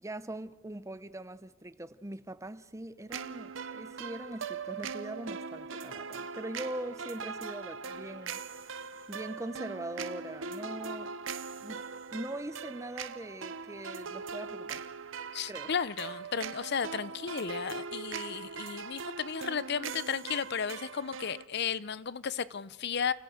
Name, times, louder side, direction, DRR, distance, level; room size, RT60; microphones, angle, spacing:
voice 1, 0.0-8.8 9.1-11.1 11.6-11.8 12.1-14.9 15.5-15.7, right 1 dB, 15° right, 0.8 m, -42 dB
sound 1, 3.1-21.5, right 5 dB, 70° right, 0.9 m, -41 dB
voice 2, 15.3-23.1, left 6 dB, 55° left, 0.7 m, -34 dB
29.5 x 14.5 x 7.9 m
head